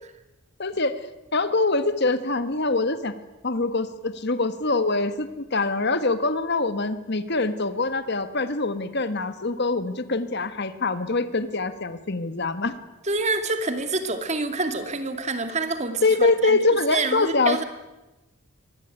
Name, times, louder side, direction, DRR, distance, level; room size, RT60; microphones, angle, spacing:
voice 1, 0.6-0.9 1.3-3.1 3.4-12.7 16.0-17.6, left 3 dB, 50° left, 11 dB, 1.6 m, -24 dB
voice 2, 13.1-16.6 16.9-17.6, right 3 dB, 35° right, 8 dB, 2.4 m, -27 dB
24.5 x 20.5 x 9.2 m, 1.0 s
head